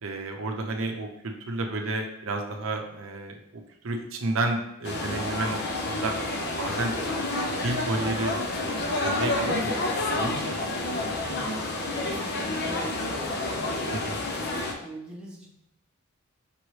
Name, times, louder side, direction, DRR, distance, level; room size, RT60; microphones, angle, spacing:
voice 1, 0.0-6.1 6.6-7.2 7.6-10.6 13.9-14.2, right 2 dB, 75° right, 3 dB, 0.6 m, -31 dB
sound 1, 4.8-14.7, left 2 dB, 55° left, 0.5 m, -29 dB
voice 2, 11.2-11.6 11.9-14.1 14.8-15.5, equal, 5° right, -4 dB, 0.7 m, -41 dB
5.2 x 3.0 x 3.1 m, 0.82 s
head